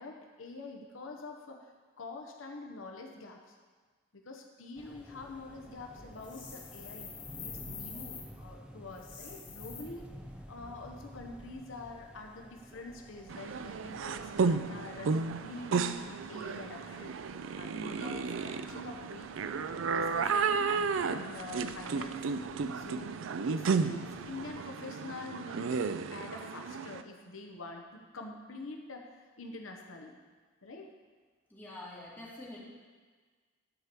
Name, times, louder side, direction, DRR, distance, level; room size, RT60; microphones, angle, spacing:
voice 1, 0.0-1.7 2.0-3.5 4.1-7.1 7.4-10.1 10.5-15.1 15.4-17.2 17.5-19.6 19.9-22.2 22.5-30.1 30.6-30.9, left 3 dB, 80° left, 2 dB, 0.9 m, -46 dB
sound 1, 4.8-24.6, equal, 5° right, 0.6 m, -53 dB
sound 2, 6.2-8.3 8.9-9.8, left 7 dB, 60° left, 1.9 m, -46 dB
sound 3, 13.3-27.0, right 5 dB, 75° right, 0.4 m, -33 dB
voice 2, 31.5-32.6, left 1 dB, 10° left, -7 dB, 2.4 m, -46 dB
11.5 x 4.5 x 6.9 m, 1.5 s
head